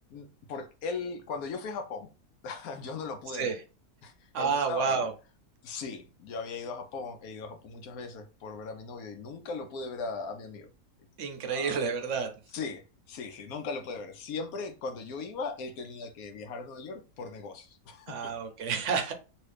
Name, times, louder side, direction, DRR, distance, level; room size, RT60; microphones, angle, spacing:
voice 1, 0.1-2.1 2.4-3.5 4.0-5.0 5.6-10.7 11.5-11.8 12.5-18.3, left 4 dB, 75° left, 1.1 m, -38 dB
voice 2, 4.3-5.1 11.2-12.4 18.1-19.1, right 5 dB, 60° right, 0.9 m, -30 dB
3.0 x 2.8 x 3.2 m
omnidirectional pair, 1.6 m